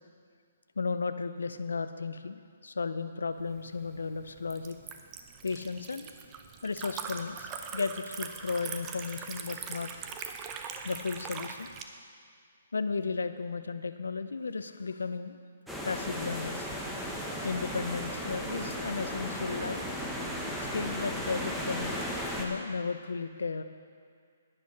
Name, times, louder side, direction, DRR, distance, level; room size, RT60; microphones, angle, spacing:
voice 1, 0.8-4.8 5.4-6.1 6.6-9.9 10.8-11.7 12.7-15.4 15.8-16.7 17.4-19.9 20.7-22.1 22.4-23.6, left 4 dB, 80° left, 11 dB, 0.6 m, -34 dB
Liquid, 3.5-11.8, right 6 dB, 25° right, 0.7 m, -42 dB
sound 1, 15.7-22.5, equal, ahead, 1.2 m, -35 dB
11.5 x 10.0 x 4.2 m, 2.1 s
hypercardioid pair, 140°, 0 cm